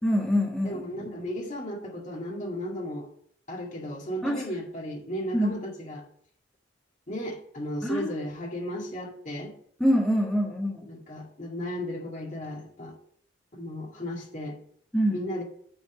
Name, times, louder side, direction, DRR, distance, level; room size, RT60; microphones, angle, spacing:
voice 1, 0.0-0.9 4.2-4.4 5.3-5.5 7.8-8.1 9.8-10.9 14.9-15.2, equal, 5° left, -3 dB, 1.3 m, -25 dB
voice 2, 0.6-3.1 3.5-6.0 7.1-9.5 10.8-12.9 13.5-14.6 15.1-15.4, equal, 40° left, -1 dB, 2.0 m, -35 dB
8.8 x 4.2 x 7.1 m, 0.63 s
head